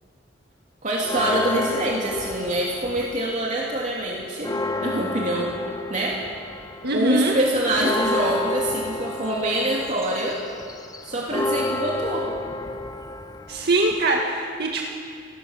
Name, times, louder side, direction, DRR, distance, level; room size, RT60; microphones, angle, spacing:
voice 1, 0.8-4.5 4.8-5.5 5.9-6.2 6.9-10.4 11.0-12.3, right 1 dB, 40° right, -3 dB, 2.9 m, -25 dB
Church bell, 1.0-3.4 3.8-3.9 4.2-14.2, left 2 dB, 20° left, 0.9 m, -31 dB
voice 2, 6.8-7.3 13.5-14.9, right 2 dB, 60° right, 0 dB, 2.0 m, -22 dB
30.0 x 18.0 x 7.3 m, 2.3 s
head